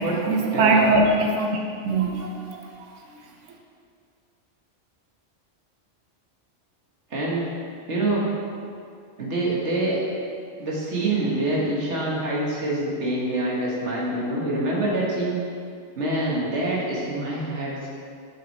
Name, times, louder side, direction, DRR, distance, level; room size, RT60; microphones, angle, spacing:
voice 1, 0.0-2.9, right 2 dB, 85° right, 1 dB, 1.1 m, -22 dB
voice 2, 0.5-0.9 7.1-7.5 7.9-8.3 9.2-10.0 10.6-15.4 16.0-17.9, right 2 dB, 70° right, -5 dB, 1.8 m, -25 dB
7.0 x 5.9 x 4.2 m, 2.3 s
omnidirectional pair, 1.2 m